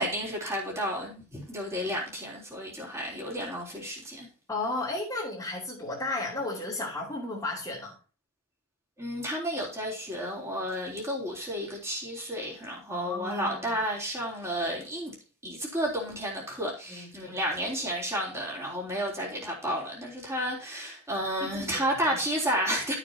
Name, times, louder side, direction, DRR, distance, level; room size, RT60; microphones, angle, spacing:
voice 1, 0.0-4.3 9.0-15.1 15.4-22.9, equal, 15° right, 3.6 m, -32 dB
voice 2, 4.5-7.9 12.9-13.8 16.9-17.4 21.4-22.0, left 2 dB, 15° left, 3.0 m, -34 dB
12.5 x 6.9 x 2.9 m
head